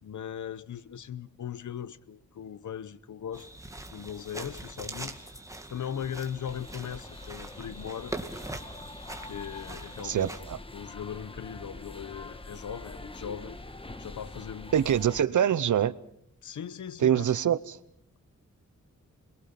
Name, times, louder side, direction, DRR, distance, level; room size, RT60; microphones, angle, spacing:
voice 1, 0.0-3.6 3.9-5.2 5.7-8.1 9.2-10.3 10.7-13.6 14.0-14.8 16.4-17.5, left 8 dB, 80° left, 0.9 m, -39 dB
sound 1, 3.3-10.4, right 1 dB, 10° right, 2.0 m, -42 dB
sound 2, 6.4-15.2, left 2 dB, 20° left, 1.2 m, -45 dB
voice 2, 10.0-10.6 14.7-15.9 17.0-17.8, right 9 dB, 85° right, 0.8 m, -24 dB
27.5 x 22.0 x 5.8 m
wide cardioid pair, 115°, 30 cm